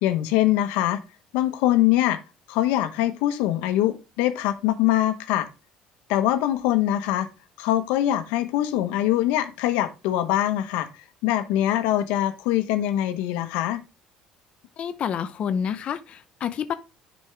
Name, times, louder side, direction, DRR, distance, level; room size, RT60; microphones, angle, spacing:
voice 1, 0.0-1.0 1.3-2.2 2.5-5.5 6.1-7.3 7.6-13.8, left 13 dB, 85° left, 1.2 m, -23 dB
voice 2, 14.8-16.7, left 8 dB, 45° left, 0.7 m, -28 dB
7.5 x 5.3 x 3.4 m
cardioid pair, 115°, 3 cm